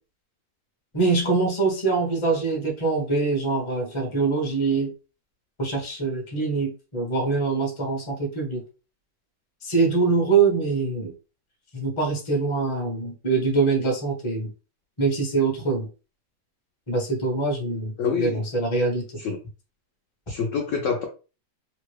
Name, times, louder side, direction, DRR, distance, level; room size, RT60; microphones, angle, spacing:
voice 1, 0.9-4.9 5.6-8.6 9.6-11.1 11.7-14.5 15.0-15.9 16.9-17.9 18.2-19.0, right 4 dB, 25° left, 0 dB, 0.8 m, -24 dB
voice 2, 18.0-18.4 19.2-19.4 20.3-21.1, left 5 dB, 70° left, 2 dB, 0.8 m, -26 dB
2.9 x 2.3 x 3.2 m, 0.33 s
omnidirectional pair, 1.8 m